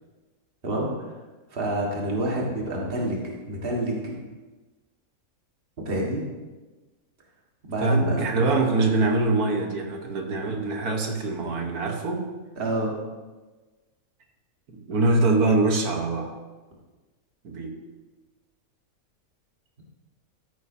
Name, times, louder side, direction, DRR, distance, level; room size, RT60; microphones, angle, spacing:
voice 1, 1.5-4.1 5.8-6.2 7.7-8.2 12.6-12.9, right 1 dB, 40° right, -2 dB, 1.9 m, -27 dB
voice 2, 7.8-12.3 14.7-16.3 17.4-17.8, right 2 dB, 85° right, 3 dB, 1.7 m, -24 dB
13.0 x 9.6 x 2.7 m, 1.2 s
omnidirectional pair, 1.5 m